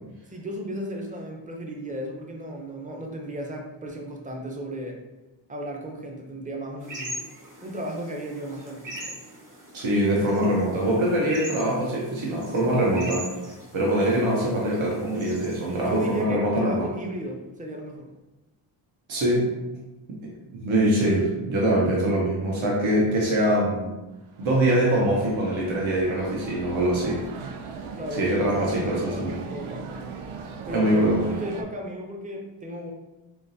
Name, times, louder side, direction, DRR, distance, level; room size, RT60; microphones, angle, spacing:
voice 1, 0.3-5.0 5.5-7.2 7.6-9.2 15.7-18.1 27.9-30.1 30.7-32.9, equal, 15° right, 1 dB, 0.5 m, -35 dB
sound 1, 6.8-16.2, right 1 dB, 40° right, 1.3 m, -41 dB
voice 2, 9.7-13.3 13.7-16.9 19.1-19.5 20.5-23.9 24.4-27.2 28.2-29.4 30.7-31.3, right 1 dB, 70° right, -4 dB, 1.0 m, -23 dB
sound 2, 24.2-31.6, right 5 dB, 90° right, 0.5 m, -39 dB
3.6 x 3.5 x 2.7 m, 1.1 s
wide cardioid pair, 125°, 48 cm